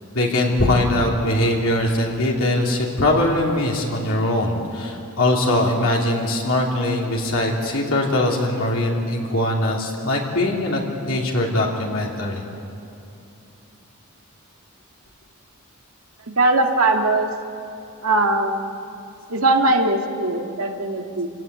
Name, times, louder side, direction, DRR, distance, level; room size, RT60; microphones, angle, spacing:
voice 1, 0.1-10.8 11.1-12.4, left 1 dB, 65° left, -2 dB, 3.0 m, -21 dB
voice 2, 16.3-17.3 18.0-18.7 19.3-21.3, right 2 dB, 75° right, 3 dB, 2.0 m, -20 dB
27.5 x 17.0 x 9.5 m, 2.8 s
head